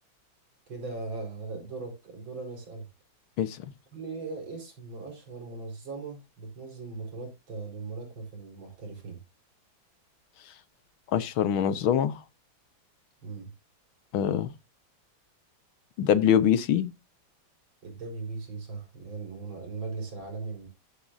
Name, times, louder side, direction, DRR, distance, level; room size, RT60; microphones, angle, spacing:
voice 1, 0.7-2.9 3.9-9.2 13.2-13.5 17.8-20.7, right 3 dB, 70° right, 5.2 m, -39 dB
voice 2, 11.1-12.2 14.1-14.5 16.0-16.9, left 9 dB, 85° left, 1.8 m, -24 dB
13.5 x 7.5 x 2.6 m
omnidirectional pair, 2.2 m